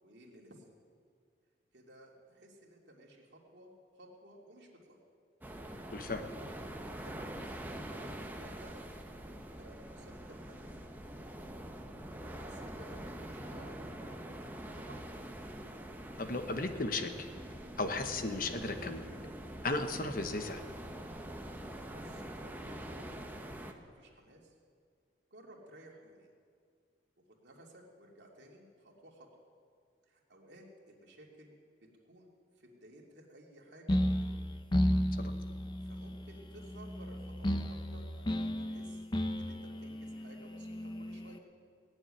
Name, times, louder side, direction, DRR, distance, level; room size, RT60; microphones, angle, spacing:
voice 1, 0.0-0.7 1.7-5.0 6.2-6.6 6.9-7.6 7.9-8.8 9.3-10.9 12.1-13.7 14.0-15.0 21.9-24.5 25.3-26.3 27.3-29.3 30.1-31.6 32.0-32.3 32.6-34.3 35.4-39.0 39.4-41.4, right 1 dB, 70° right, -1 dB, 2.7 m, -56 dB
sound 1, 5.4-23.7, right 1 dB, 10° right, 0.9 m, -45 dB
voice 2, 5.9-6.2 16.2-17.3 17.8-19.0 19.6-20.6 35.2-35.3, left 2 dB, 50° left, 7 dB, 1.1 m, -35 dB
sound 2, 33.9-41.4, equal, 25° left, 0.7 m, -34 dB
18.5 x 7.2 x 9.9 m, 2.1 s
head